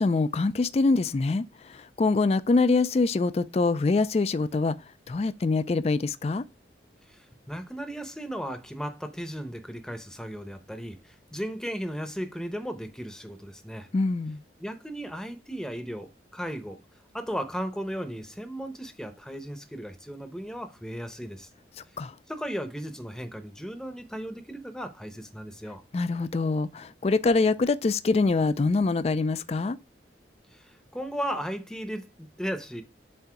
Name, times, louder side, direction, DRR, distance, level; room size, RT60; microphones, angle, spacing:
voice 1, 0.0-4.8 5.1-6.4 13.9-14.4 22.0-22.1 25.9-29.8, left 3 dB, 35° left, 0.3 m, -24 dB
voice 2, 7.1-13.9 14.6-16.8 17.1-21.5 22.3-25.8 30.5-32.8, equal, 5° left, 0.8 m, -36 dB
7.6 x 2.7 x 5.7 m
head